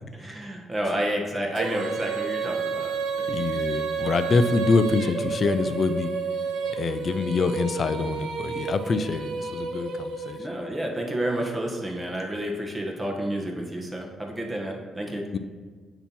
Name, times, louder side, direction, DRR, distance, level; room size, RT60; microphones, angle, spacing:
voice 1, 0.1-2.9 10.4-15.2, right 1 dB, 20° right, 0 dB, 1.2 m, -30 dB
Female singing, 1.5-10.7, right 5 dB, 80° right, 0.7 m, -30 dB
voice 2, 3.3-6.1 6.8-10.4 15.3-15.4, left 4 dB, 45° left, 11 dB, 0.5 m, -25 dB
8.7 x 3.0 x 5.5 m, 1.5 s
cardioid pair, 90°, 0 cm